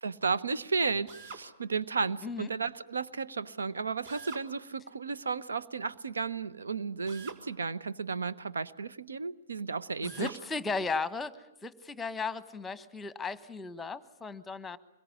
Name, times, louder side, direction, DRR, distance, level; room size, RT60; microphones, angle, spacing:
voice 1, 0.0-10.3, right 4 dB, 75° right, 13 dB, 1.1 m, -33 dB
Drill, 1.1-1.5 4.1-4.5 7.1-7.4 10.0-10.4, right 5 dB, 45° right, 4.1 m, -46 dB
voice 2, 10.0-11.4 11.6-14.8, left 4 dB, 10° left, 16 dB, 1.2 m, -35 dB
25.0 x 22.5 x 9.8 m, 0.92 s
figure-of-eight pair, 120°, 0 cm